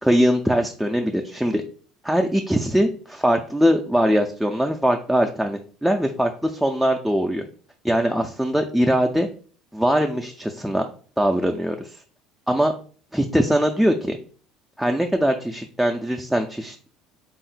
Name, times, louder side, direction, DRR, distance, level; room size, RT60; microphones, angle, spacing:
voice 1, 0.0-1.6 2.0-7.4 7.8-9.3 9.7-10.9 11.2-12.0 12.5-12.7 13.1-14.2 14.8-16.9, equal, ahead, 2 dB, 0.3 m, -21 dB
3.6 x 2.1 x 4.0 m, 0.42 s
supercardioid pair, 105°, 0 cm